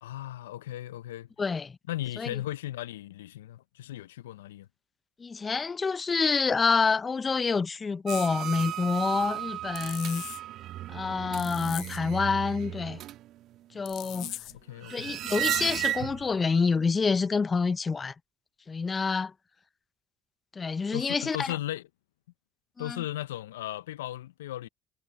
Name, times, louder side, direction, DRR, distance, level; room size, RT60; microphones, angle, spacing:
voice 1, 0.0-1.3 1.9-4.7 14.0-14.3 14.7-15.1 20.9-21.8 22.8-24.7, left 14 dB, 85° left, 0.5 m, -36 dB
voice 2, 1.4-1.7 2.2-2.4 5.2-10.2 10.9-13.0 13.7-14.3 14.9-18.1 18.7-19.3 20.6-21.6 22.8-23.0, left 4 dB, 35° left, 0.7 m, -27 dB
sound 1, 8.1-8.3 9.7-10.4 11.3-12.0 13.8-14.6, left 17 dB, 70° left, 0.9 m, -40 dB
sound 2, 8.1-16.4 16.8-16.9, right 13 dB, 65° right, 1.8 m, -35 dB
hypercardioid pair, 60°, 0 cm